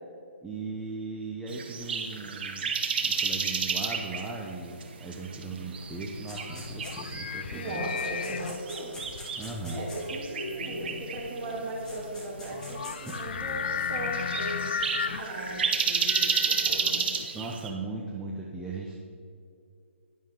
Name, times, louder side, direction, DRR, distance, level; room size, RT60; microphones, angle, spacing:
voice 1, 0.4-2.7 3.0-7.8 9.3-9.8 13.0-13.2 17.3-19.0, right 3 dB, 5° right, -3 dB, 0.7 m, -38 dB
sound 1, 1.5-17.7, right 5 dB, 50° right, 1.2 m, -32 dB
sound 2, 5.8-17.3, left 7 dB, 55° left, 0.3 m, -36 dB
sound 3, 6.3-7.3 7.7-10.4 11.5-11.6 11.8-13.2, left 1 dB, 10° left, 1.8 m, -46 dB
voice 2, 7.5-9.0 9.6-17.1, right 1 dB, 25° right, -4 dB, 2.6 m, -37 dB
10.5 x 10.0 x 3.8 m, 2.5 s
hypercardioid pair, 150°, 7 cm